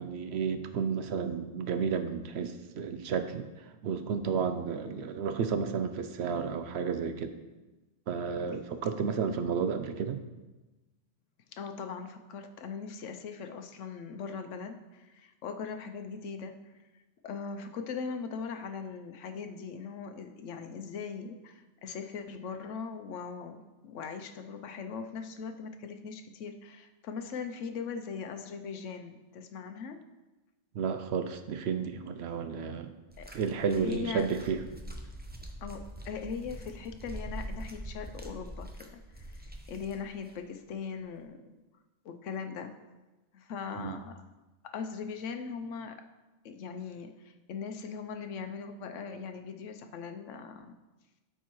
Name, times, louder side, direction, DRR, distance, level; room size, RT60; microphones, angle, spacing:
voice 1, 0.0-7.4 8.1-10.2 30.7-33.0 33.3-34.6 43.8-44.0, right 6 dB, 65° right, 9 dB, 0.8 m, -32 dB
voice 2, 11.5-16.7 17.2-30.0 33.2-33.3 33.8-34.3 35.6-41.6 42.0-42.7 43.3-44.2 44.7-46.0 46.4-50.7, left 5 dB, 90° left, 6 dB, 1.0 m, -40 dB
sound 1, 33.1-40.4 41.2-41.3, right 1 dB, 10° right, 0.5 m, -44 dB
12.5 x 4.6 x 3.0 m, 1.1 s
omnidirectional pair, 1.3 m